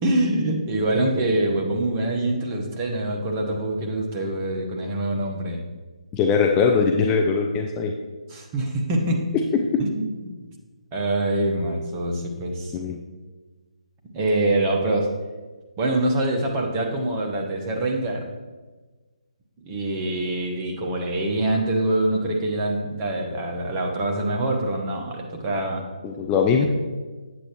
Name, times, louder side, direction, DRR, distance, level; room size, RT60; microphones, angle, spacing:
voice 1, 0.0-5.6 8.3-9.3 9.8-10.3 10.9-12.8 14.1-15.1 15.8-18.3 19.6-25.9, right 1 dB, 20° right, 0 dB, 1.0 m, -25 dB
voice 2, 6.1-7.9 9.5-9.8 12.7-13.0 26.0-26.7, left 5 dB, 15° left, 2 dB, 0.4 m, -21 dB
8.4 x 7.8 x 3.0 m, 1.3 s
figure-of-eight pair, 150°, 4 cm